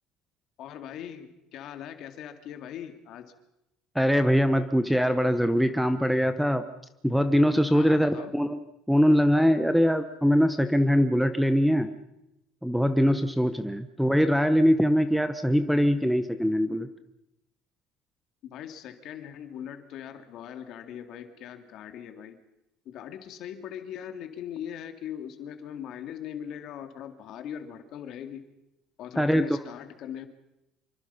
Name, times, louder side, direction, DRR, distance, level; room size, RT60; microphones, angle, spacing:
voice 1, 0.6-3.3 7.7-8.3 18.4-22.4 22.9-28.5 29.0-30.3, left 9 dB, 45° left, 8 dB, 2.4 m, -40 dB
voice 2, 3.9-6.6 7.0-8.6 8.9-11.9 12.6-16.9 29.2-29.5, equal, ahead, 10 dB, 0.8 m, -22 dB
26.5 x 24.0 x 5.7 m, 0.89 s
cardioid pair, 170°, 0 cm